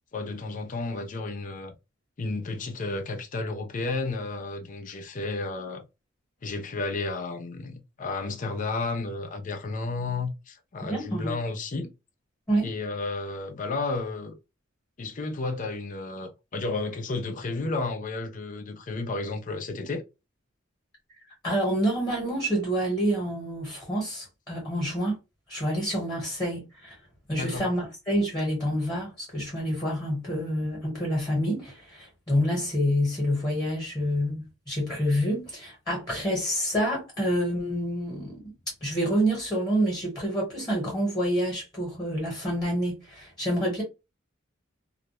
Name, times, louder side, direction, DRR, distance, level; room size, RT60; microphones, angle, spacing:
voice 1, 0.1-1.7 2.2-5.8 6.4-11.9 12.6-14.3 15.0-20.0 27.4-27.6, left 3 dB, 40° left, 0.5 m, -32 dB
voice 2, 10.9-11.3 12.5-12.7 21.4-25.2 25.5-27.0 27.3-38.5 38.8-43.8, equal, 20° left, 1.1 m, -27 dB
2.3 x 2.1 x 2.9 m
head